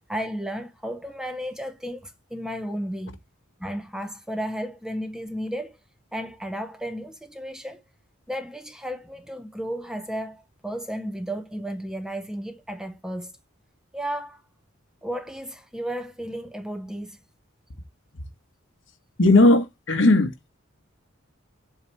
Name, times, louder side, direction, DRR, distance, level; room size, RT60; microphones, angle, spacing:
voice 1, 0.0-3.2 3.6-5.8 6.1-7.8 8.3-13.3 13.9-14.4 15.0-17.2, equal, 5° right, 0.5 m, -33 dB
voice 2, 19.2-20.3, left 2 dB, 60° left, 1.0 m, -17 dB
7.9 x 2.8 x 4.4 m
head